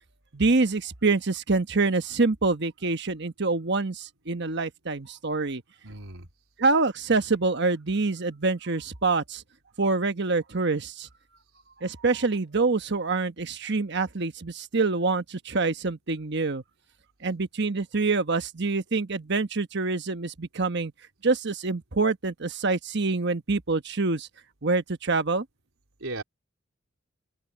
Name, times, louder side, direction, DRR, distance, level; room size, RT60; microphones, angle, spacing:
voice 1, 0.3-5.6 6.6-9.4 9.8-11.1 11.8-16.6 17.2-20.9 21.2-24.3 24.6-25.4, right 3 dB, 55° right, 1.2 m, -26 dB
voice 2, 5.8-6.3 26.0-26.2, right 2 dB, 90° right, 3.7 m, -36 dB
open air
head